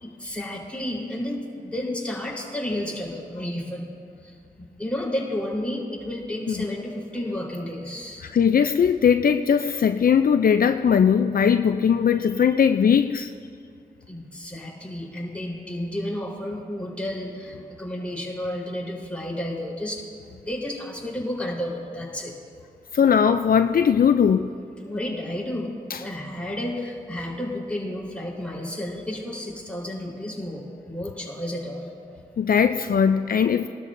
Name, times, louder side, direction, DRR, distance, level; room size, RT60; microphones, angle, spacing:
voice 1, 0.0-3.9 4.2-8.2 14.1-20.0 20.3-22.3 24.8-31.9, left 1 dB, 5° left, -4 dB, 3.9 m, -32 dB
voice 2, 8.2-13.3 22.9-24.5 25.9-26.0 32.4-33.7, left 7 dB, 65° left, 9 dB, 0.4 m, -19 dB
20.5 x 12.5 x 2.6 m, 2.3 s
cardioid pair, 45°, 16 cm